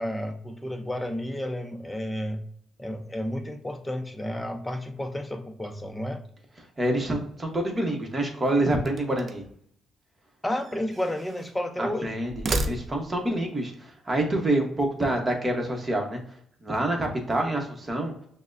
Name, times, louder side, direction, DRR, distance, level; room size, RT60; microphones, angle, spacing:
voice 1, 0.0-2.4 2.8-6.2 10.4-12.2, left 1 dB, 10° left, 6 dB, 0.6 m, -31 dB
voice 2, 6.8-9.4 11.8-12.3 12.6-16.2 16.6-18.1, right 1 dB, 25° right, 1 dB, 1.0 m, -27 dB
sound 1, 8.8-9.6 10.5-11.6 12.2-13.3, right 2 dB, 45° right, 0.5 m, -33 dB
5.9 x 2.1 x 2.5 m, 0.65 s
cardioid pair, 90°, 0 cm